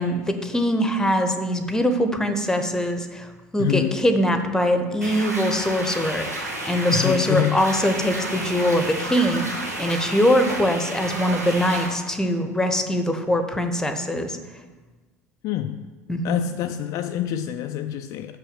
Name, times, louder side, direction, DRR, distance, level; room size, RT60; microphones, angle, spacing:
voice 1, 0.0-14.4 16.1-16.4, equal, 5° left, 0.9 m, -22 dB
voice 2, 3.6-4.1 6.9-7.6 15.4-15.9 16.2-18.4, left 11 dB, 45° left, 0.4 m, -26 dB
sound 1, 5.0-11.9, right 1 dB, 85° right, 1.3 m, -31 dB
6.4 x 5.6 x 7.2 m
figure-of-eight pair, 70°, 8 cm